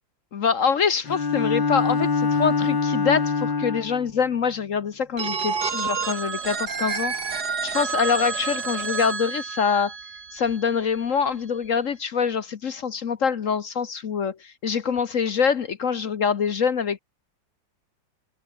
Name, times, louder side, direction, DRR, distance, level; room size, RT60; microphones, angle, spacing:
voice 1, 0.3-7.1 7.6-9.9 10.3-17.0, left 6 dB, 50° left, 1.1 m, -25 dB
Bowed string instrument, 1.0-4.1, left 4 dB, 75° left, 3.9 m, -24 dB
Telephone, 5.2-10.9, right 5 dB, 55° right, 2.7 m, -29 dB
omnidirectional pair, 2.1 m